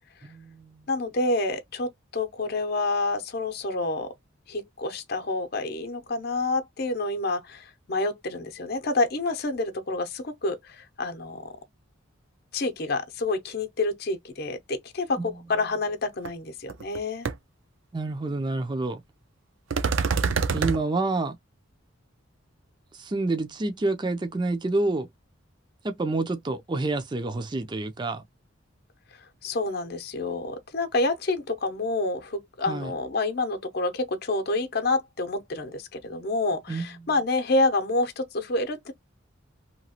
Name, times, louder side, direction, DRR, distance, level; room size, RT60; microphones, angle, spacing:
voice 1, 0.2-0.9 15.2-15.3 17.9-19.0 20.5-21.4 22.9-25.1 25.8-28.2 32.7-32.9 36.7-37.1, right 2 dB, 25° right, 0.4 m, -28 dB
voice 2, 0.9-4.1 4.5-11.6 12.5-17.3 29.4-38.9, left 2 dB, 50° left, 0.7 m, -28 dB
sound 1, 16.2-16.3 16.7-17.0 17.2-17.3 19.7-20.8, right 5 dB, 80° right, 0.5 m, -25 dB
2.9 x 2.3 x 2.8 m
head